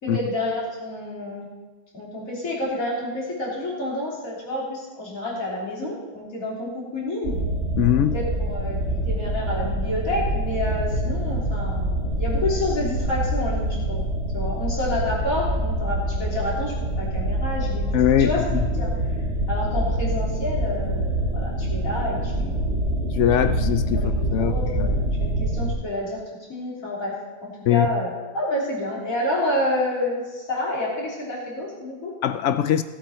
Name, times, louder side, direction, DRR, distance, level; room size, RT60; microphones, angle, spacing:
voice 1, 0.0-1.5 1.9-7.4 8.0-14.0 14.3-18.4 18.7-18.9 19.5-22.6 23.4-23.5 23.9-26.2 26.5-32.1, left 1 dB, 50° left, -5 dB, 3.8 m, -29 dB
sound 1, 7.2-25.7, right 1 dB, 45° right, 1.4 m, -25 dB
voice 2, 7.8-8.2 17.9-18.7 23.2-24.9 27.7-27.9 32.2-32.8, left 10 dB, 85° left, 11 dB, 0.6 m, -21 dB
18.0 x 8.1 x 4.3 m, 1.2 s
omnidirectional pair, 1.8 m